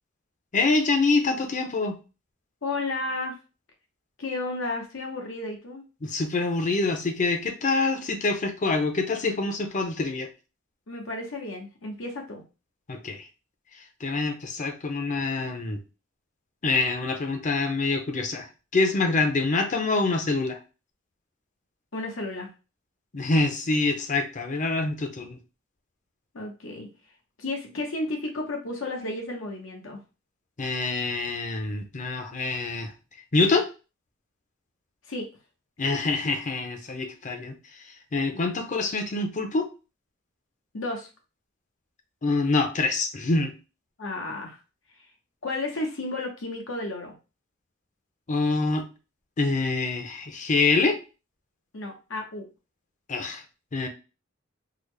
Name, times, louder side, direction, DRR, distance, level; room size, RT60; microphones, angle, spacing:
voice 1, 0.5-1.9 6.0-10.3 12.9-13.3 14.0-15.8 16.6-18.5 18.7-20.6 23.1-25.4 30.6-32.9 33.3-33.7 35.8-37.6 38.1-39.7 42.2-43.5 48.3-48.8 49.4-51.0 53.1-53.4 53.7-53.9, left 3 dB, 40° left, 5 dB, 0.6 m, -25 dB
voice 2, 2.6-3.3 4.2-5.9 10.9-12.4 21.9-22.5 26.3-26.9 27.4-30.0 35.1-35.3 40.7-41.1 44.0-44.6 45.4-47.1 51.7-52.5, left 2 dB, 85° left, 2 dB, 0.9 m, -32 dB
3.8 x 2.0 x 3.2 m, 0.31 s
head